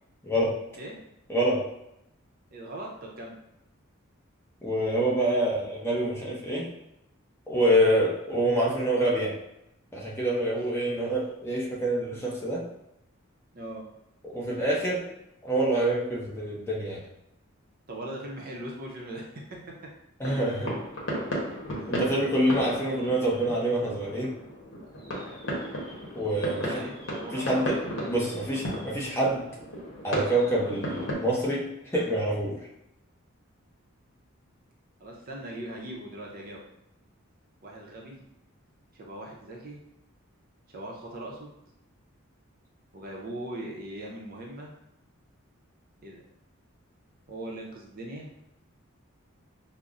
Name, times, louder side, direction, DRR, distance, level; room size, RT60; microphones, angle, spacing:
voice 1, 1.3-1.6 4.6-6.7 7.5-9.3 9.9-12.6 14.2-15.0 15.4-17.0 20.2-20.7 21.9-24.3 26.1-26.8 27.3-27.8 28.1-29.4 30.0-31.7 31.9-32.6, right 1 dB, 10° left, -5 dB, 0.6 m, -26 dB
voice 2, 2.5-3.4 10.3-10.6 13.5-13.8 17.9-19.9 26.4-27.7 28.0-28.4 35.0-36.6 37.6-38.2 38.9-39.8 40.7-41.5 42.9-44.7 46.0-46.2 47.3-48.3, right 1 dB, 45° right, -1 dB, 0.6 m, -40 dB
sound 1, 20.2-31.1, equal, 60° left, 0.9 m, -35 dB
5.2 x 2.0 x 2.4 m, 0.84 s
head